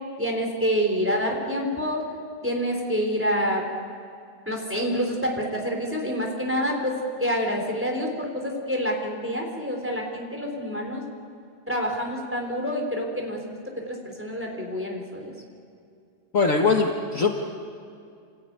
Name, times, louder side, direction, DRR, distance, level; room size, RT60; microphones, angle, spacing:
voice 1, 0.2-2.0 2.4-3.6 4.5-6.9 7.2-11.0 11.7-13.4 13.9-15.3, equal, 5° right, 0 dB, 3.8 m, -27 dB
voice 2, 16.3-17.5, left 4 dB, 50° left, 2 dB, 1.7 m, -22 dB
28.0 x 16.0 x 9.4 m, 2.4 s
omnidirectional pair, 1.9 m